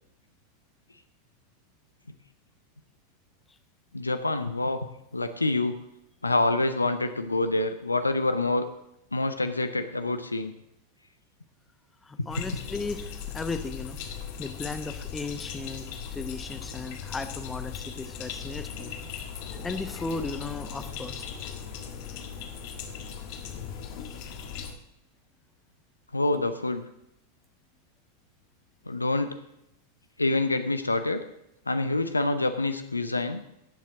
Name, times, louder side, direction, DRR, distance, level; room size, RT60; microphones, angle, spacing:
voice 1, 3.9-4.8 5.1-5.8 6.2-8.7 9.1-10.5 12.2-12.5 26.1-26.9 28.9-29.4 30.2-31.2 31.7-33.4, left 2 dB, 80° left, 9 dB, 0.6 m, -26 dB
voice 2, 12.0-14.0 14.4-15.9 16.1-18.9 19.6-21.2, left 3 dB, 10° left, 9 dB, 0.9 m, -36 dB
sound 1, 12.3-24.7, left 7 dB, 45° left, 1.5 m, -38 dB
17.5 x 7.3 x 3.8 m, 0.85 s
figure-of-eight pair, 90°, 0 cm